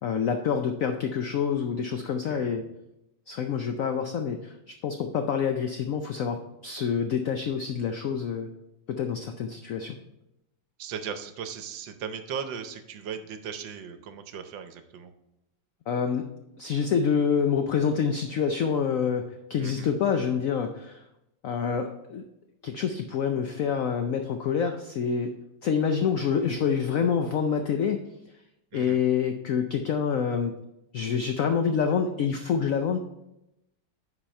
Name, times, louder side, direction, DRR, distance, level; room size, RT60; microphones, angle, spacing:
voice 1, 0.0-2.6 3.3-8.5 8.9-10.0 15.9-16.3 16.6-21.0 21.4-22.2 22.6-25.4 25.6-28.0 28.7-30.5 30.9-33.0, left 7 dB, 85° left, 6 dB, 0.7 m, -27 dB
voice 2, 10.8-15.1 19.6-19.9 28.7-29.0, right 7 dB, 75° right, 9 dB, 1.4 m, -37 dB
10.0 x 4.4 x 4.3 m, 0.87 s
omnidirectional pair, 2.1 m